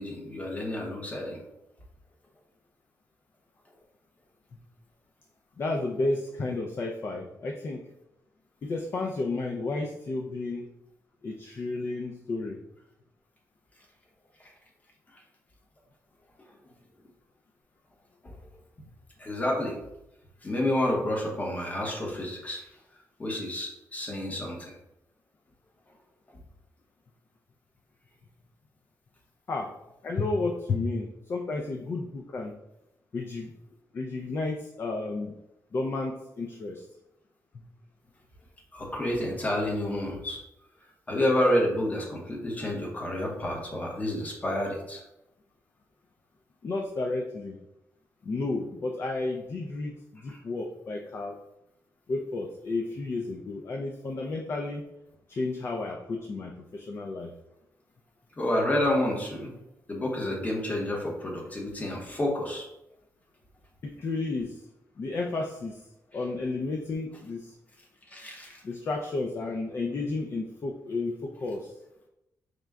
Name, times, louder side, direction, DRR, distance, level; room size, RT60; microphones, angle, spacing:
voice 1, 0.0-1.4 18.2-18.4 19.2-19.8 20.4-22.6 23.2-24.7 38.7-40.4 41.1-45.0 50.3-50.4 58.4-59.5 59.9-62.7 68.1-68.6, left 1 dB, 25° left, -1 dB, 0.9 m, -29 dB
voice 2, 5.6-7.8 8.6-10.7 11.2-12.6 29.5-29.7 30.0-32.6 33.1-33.5 33.9-35.3 35.7-36.9 37.5-37.6 46.6-47.6 48.2-51.4 52.1-54.8 55.3-57.3 63.8-64.7 65.0-65.9 66.1-67.6 68.6-71.8, left 3 dB, 40° left, 2 dB, 0.3 m, -32 dB
4.9 x 2.2 x 3.4 m, 0.88 s
wide cardioid pair, 165°, 6 cm